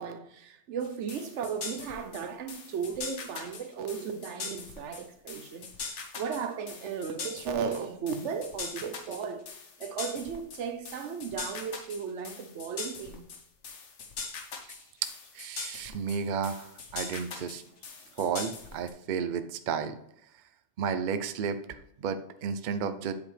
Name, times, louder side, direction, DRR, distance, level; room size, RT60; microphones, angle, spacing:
voice 1, 0.0-9.5 9.8-13.2, right 6 dB, 80° right, 1.0 m, -35 dB
sound 1, 0.8-18.9, left 5 dB, 75° left, 1.3 m, -41 dB
voice 2, 15.0-17.6 18.2-20.0 20.8-21.6 22.0-23.1, right 6 dB, 55° right, 0.6 m, -32 dB
8.2 x 4.9 x 3.3 m
omnidirectional pair, 1.2 m